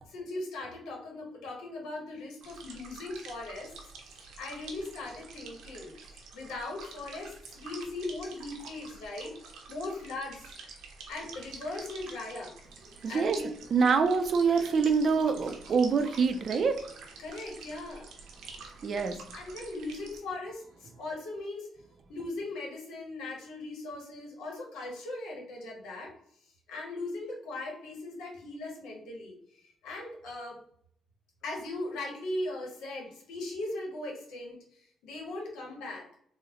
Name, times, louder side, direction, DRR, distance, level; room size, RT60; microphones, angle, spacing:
voice 1, 0.1-3.7 4.0-5.9 6.3-9.3 9.7-10.5 11.1-12.5 13.1-13.5 17.2-18.1 19.3-21.7 22.1-26.1 26.4-30.6 31.4-36.1, left 2 dB, 90° left, 0 dB, 1.0 m, -39 dB
sound 1, 2.4-20.2, right 4 dB, 80° right, 0.7 m, -48 dB
voice 2, 13.0-13.4 13.7-16.8 18.8-19.2, right 5 dB, 50° right, 8 dB, 0.4 m, -25 dB
3.7 x 2.1 x 2.8 m, 0.66 s
cardioid pair, 90°, 0 cm